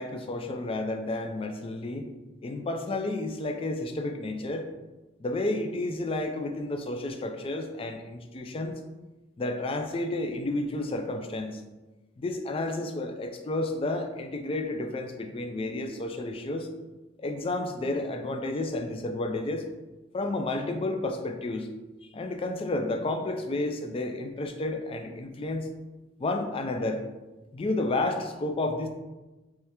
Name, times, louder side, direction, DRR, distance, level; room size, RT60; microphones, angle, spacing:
voice 1, 0.0-2.1 2.4-4.7 5.2-8.7 9.4-11.6 12.2-16.7 17.2-19.7 20.1-21.7 22.0-25.7 26.2-27.0 27.5-28.9, left 2 dB, 25° left, 5 dB, 0.3 m, -31 dB
3.5 x 3.2 x 2.9 m, 1.1 s
head